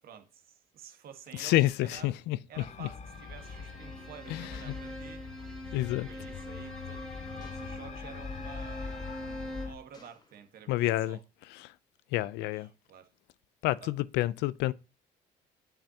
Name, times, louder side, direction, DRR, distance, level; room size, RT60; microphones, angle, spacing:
voice 1, 0.0-2.2 2.5-7.1 7.4-11.2 12.4-13.1 13.8-13.9, right 8 dB, 60° right, 1.4 m, -51 dB
voice 2, 1.3-2.4 2.8-2.9 4.3-4.8 5.7-6.1 10.7-11.2 11.5-11.7 12.1-12.7 13.6-14.7, left 16 dB, 90° left, 0.5 m, -29 dB
sound 1, 2.5-9.8, left 6 dB, 40° left, 0.9 m, -43 dB
Bowed string instrument, 3.0-9.9, equal, 5° left, 2.1 m, -44 dB
Gunshot gunfire, 4.5-5.8 7.4-8.2 9.0-9.3 9.9-10.7, left 3 dB, 25° left, 1.4 m, -61 dB
8.8 x 5.7 x 2.8 m
cardioid pair, 110°, 17 cm